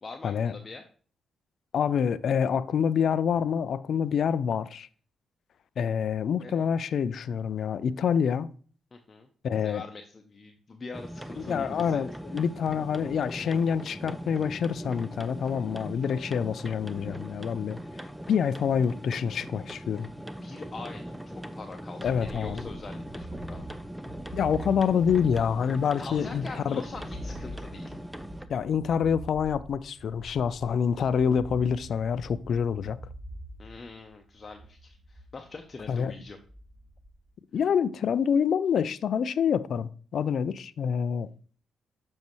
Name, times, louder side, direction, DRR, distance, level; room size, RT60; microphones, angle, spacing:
voice 1, 0.0-0.8 6.4-6.9 8.9-9.3 9.6-12.1 20.4-21.2 21.5-23.7 26.0-28.0 33.6-36.4 37.5-37.6, left 3 dB, 40° left, 0.7 m, -43 dB
voice 2, 1.7-4.9 5.8-8.5 9.4-9.8 11.4-17.8 18.3-20.1 22.0-22.6 24.3-26.8 28.5-33.0 35.9-36.1 37.5-41.3, left 7 dB, 60° left, 0.3 m, -27 dB
sound 1, 10.9-28.5, equal, 5° right, 0.6 m, -40 dB
sound 2, 22.0-37.3, right 1 dB, 45° right, 3.2 m, -44 dB
7.2 x 5.3 x 3.1 m
hypercardioid pair, 40°, 0 cm